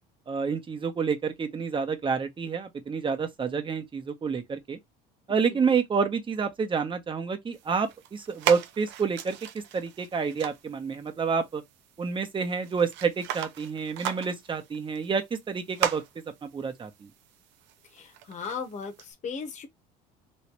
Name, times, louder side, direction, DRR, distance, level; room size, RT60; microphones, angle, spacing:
voice 1, 0.3-4.8 5.3-11.6 12.0-16.0 16.4-17.1, right 5 dB, 25° right, 0.9 m, -28 dB
sound 1, 7.5-19.1, right 11 dB, 70° right, 0.7 m, -38 dB
voice 2, 17.9-19.7, left 5 dB, 40° left, 1.1 m, -37 dB
3.2 x 3.0 x 3.0 m
supercardioid pair, 100°, 19 cm